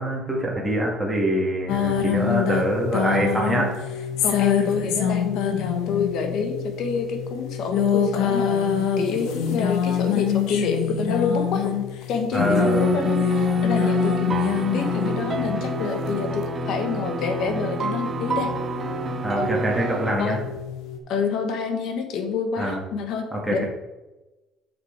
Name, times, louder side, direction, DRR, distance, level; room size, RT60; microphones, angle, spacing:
voice 1, 0.0-3.8 12.3-12.9 19.2-20.4 22.6-22.8 23.3-23.6, right 1 dB, 5° right, -3 dB, 1.7 m, -24 dB
sound 1, 1.7-21.0, left 8 dB, 80° left, 1.0 m, -26 dB
voice 2, 4.2-11.6 12.1-14.4 14.7-18.5 19.3-19.5 20.2-20.4 21.1-23.6, left 5 dB, 60° left, 5 dB, 1.3 m, -28 dB
sound 2, 12.4-20.2, right 5 dB, 30° right, 0.5 m, -29 dB
7.1 x 6.0 x 4.3 m, 1.1 s
cardioid pair, 145°, 0 cm